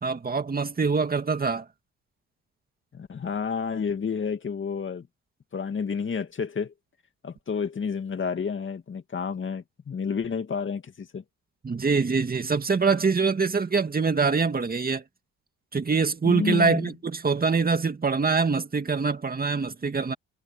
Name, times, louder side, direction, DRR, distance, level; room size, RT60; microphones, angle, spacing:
voice 1, 0.0-1.6 11.6-15.0 15.7-20.1, right 4 dB, 30° right, 2.3 m, -24 dB
voice 2, 2.9-5.1 5.5-6.7 7.2-11.2 16.2-16.9, left 6 dB, 40° left, 2.5 m, -30 dB
cardioid pair, 90°, 30 cm